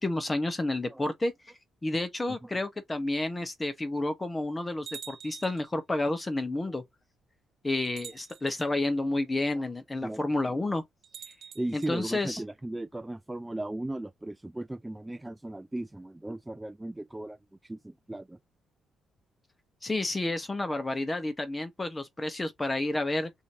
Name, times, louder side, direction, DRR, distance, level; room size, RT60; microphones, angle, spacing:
voice 1, 0.0-1.3 1.8-6.8 7.6-10.8 11.7-12.4 19.8-23.3, left 2 dB, 20° left, 1.0 m, -30 dB
sound 1, 4.9-5.7 6.9-7.0 7.8-8.7 11.0-11.9, right 7 dB, 65° right, 0.7 m, -46 dB
voice 2, 11.6-17.4 17.6-18.4, right 1 dB, 10° right, 0.3 m, -37 dB
3.1 x 2.7 x 2.6 m
cardioid pair, 90°, 0 cm